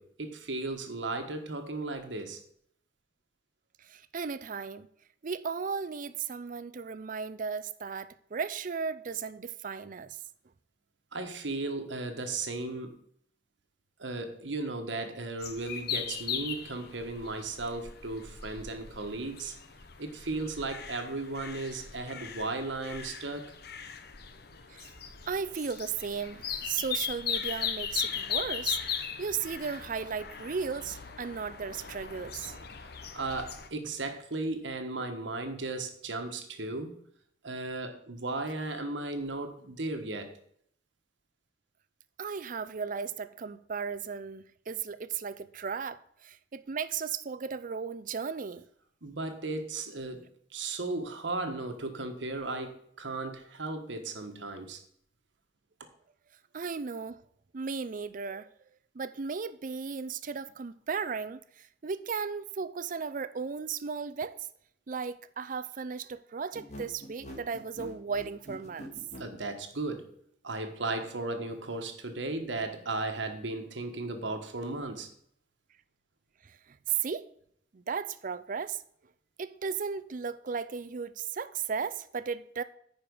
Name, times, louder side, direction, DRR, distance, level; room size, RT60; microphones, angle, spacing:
voice 1, 0.0-2.4 11.1-13.0 14.0-19.5 20.0-23.5 33.1-37.0 37.4-40.3 49.0-54.8 69.2-70.1 70.4-75.1, right 2 dB, 85° right, 1.3 m, -35 dB
voice 2, 3.8-4.9 5.2-10.2 24.7-24.9 25.3-32.5 42.2-48.6 56.5-57.2 57.5-58.5 58.9-64.5 64.9-68.9 76.4-77.3 77.7-78.8 79.4-82.6, right 6 dB, 45° right, 0.5 m, -35 dB
sound 1, 15.4-33.7, left 7 dB, 60° left, 0.8 m, -38 dB
sound 2, 66.5-69.3, left 1 dB, 40° left, 1.8 m, -44 dB
9.6 x 5.1 x 5.3 m
head